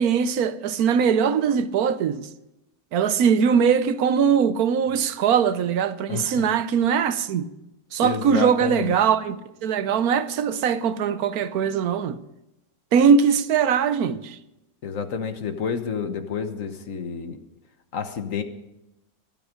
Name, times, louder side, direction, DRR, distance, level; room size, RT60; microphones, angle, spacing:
voice 1, 0.0-2.3 2.9-7.5 7.9-9.4 9.6-12.2 12.9-14.4, right 7 dB, 80° right, 1.3 m, -21 dB
voice 2, 6.1-6.5 8.0-9.0 14.8-17.4 17.9-18.4, left 6 dB, 60° left, 1.5 m, -29 dB
24.0 x 8.9 x 5.0 m
omnidirectional pair, 1.6 m